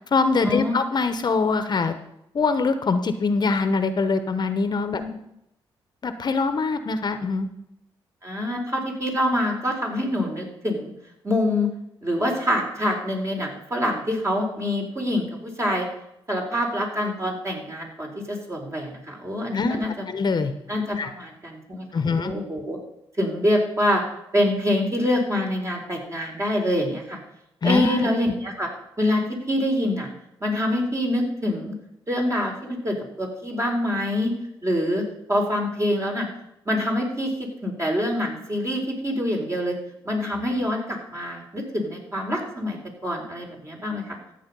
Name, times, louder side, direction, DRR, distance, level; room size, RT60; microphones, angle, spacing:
voice 1, 0.1-1.9 2.3-5.0 6.0-7.5 19.5-20.5 21.0-21.1 21.9-22.3 27.6-28.1, left 4 dB, 50° left, 10 dB, 1.0 m, -23 dB
voice 2, 8.2-10.9 11.2-11.7 12.0-15.8 16.3-19.9 20.7-22.8 23.2-24.0 24.3-27.2 27.6-28.7 29.0-30.1 30.4-31.7 32.1-34.3 34.6-36.3 36.7-39.7 40.0-42.8 43.0-44.2, left 1 dB, 30° right, 0 dB, 4.1 m, -25 dB
13.5 x 8.3 x 5.4 m, 0.82 s
cardioid pair, 60°, 9 cm